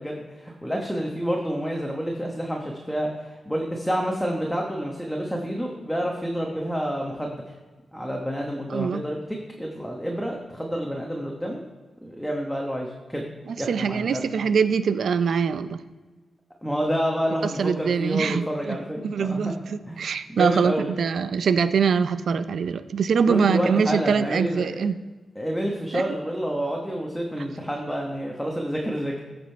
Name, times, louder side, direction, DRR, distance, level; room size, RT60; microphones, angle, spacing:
voice 1, 0.0-7.5 7.9-11.6 12.0-13.3 13.6-14.2 16.6-19.5 19.8-20.9 23.2-24.8 25.3-29.2, equal, ahead, -1 dB, 1.1 m, -28 dB
voice 2, 13.5-15.8 17.4-18.8 19.0-25.0 25.9-26.0, right 6 dB, 70° right, 13 dB, 0.5 m, -23 dB
14.0 x 5.2 x 4.5 m, 1.3 s
wide cardioid pair, 110°, 0 cm